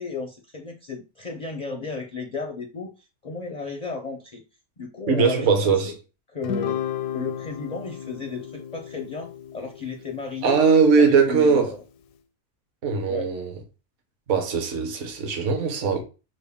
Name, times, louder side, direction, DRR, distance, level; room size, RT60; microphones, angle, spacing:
voice 1, 0.0-2.9 3.2-4.4 4.8-5.9 6.3-6.8 7.1-10.6 11.0-11.8 13.1-13.3, left 4 dB, 50° left, 0.4 m, -34 dB
voice 2, 5.1-5.9 10.4-11.7 12.8-13.5 14.3-16.0, right 5 dB, 55° right, 1.2 m, -20 dB
Guitar, 6.4-11.0, left 8 dB, 80° left, 1.1 m, -34 dB
6.3 x 2.2 x 3.5 m
omnidirectional pair, 1.7 m